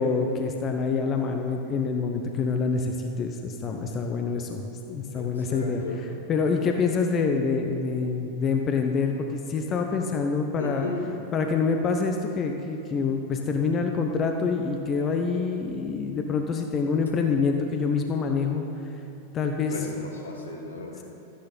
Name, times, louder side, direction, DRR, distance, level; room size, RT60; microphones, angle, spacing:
voice 1, 0.0-5.8 6.3-10.9 11.3-18.7 19.3-19.8, left 5 dB, 30° left, 3 dB, 0.9 m, -26 dB
voice 2, 5.1-6.0 10.6-11.1 19.7-21.0, left 3 dB, 75° left, 0 dB, 1.9 m, -35 dB
13.5 x 10.0 x 5.6 m, 2.9 s
figure-of-eight pair, 90°, 0 cm